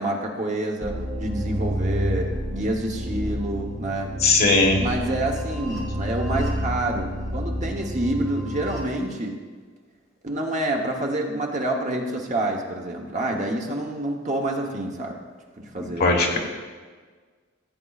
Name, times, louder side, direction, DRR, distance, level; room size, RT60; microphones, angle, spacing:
voice 1, 0.0-4.1 4.8-9.4 10.2-15.2 15.6-16.2, right 1 dB, 40° right, 1 dB, 1.0 m, -28 dB
sound 1, 0.8-8.8, equal, ahead, 2.3 m, -29 dB
voice 2, 4.2-4.8 16.0-16.4, left 3 dB, 50° left, 1 dB, 1.4 m, -18 dB
15.0 x 8.2 x 2.5 m, 1.5 s
head